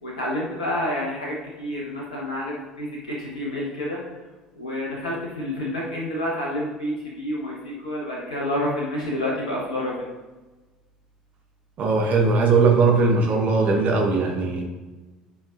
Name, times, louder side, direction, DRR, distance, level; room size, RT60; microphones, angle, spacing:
voice 1, 0.0-2.9 3.2-4.0 4.6-9.9, left 1 dB, 80° left, -4 dB, 1.1 m, -29 dB
voice 2, 11.8-14.6, right 4 dB, 40° right, 1 dB, 1.3 m, -19 dB
10.0 x 5.1 x 2.5 m, 1.2 s
figure-of-eight pair, 60°, 4 cm